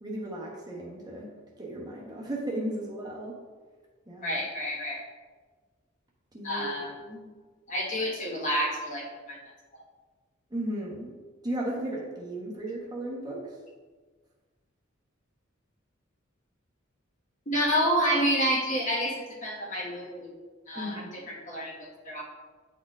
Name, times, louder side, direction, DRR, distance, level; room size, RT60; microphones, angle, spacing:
voice 1, 0.0-1.3 1.6-3.3 4.1-4.4 6.3-7.3 10.5-13.4 20.8-21.1, right 1 dB, 20° right, -3 dB, 0.9 m, -35 dB
voice 2, 4.2-5.0 6.4-6.9 7.7-9.4 17.5-19.1 19.4-20.3 20.7-22.2, equal, 40° left, -5 dB, 1.4 m, -29 dB
9.2 x 4.3 x 2.4 m, 1.4 s
head